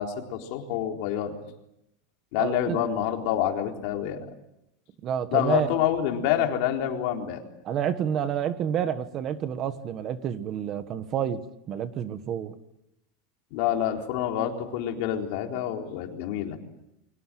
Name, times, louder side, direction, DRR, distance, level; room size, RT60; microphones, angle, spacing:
voice 1, 0.0-1.3 2.3-4.3 5.3-7.4 13.5-16.6, left 10 dB, 50° left, 3 dB, 4.0 m, -27 dB
voice 2, 2.4-2.8 5.0-5.7 7.6-11.4 11.7-12.5, right 9 dB, 30° right, 11 dB, 1.4 m, -29 dB
30.0 x 24.0 x 7.7 m, 0.84 s
supercardioid pair, 170°, 0 cm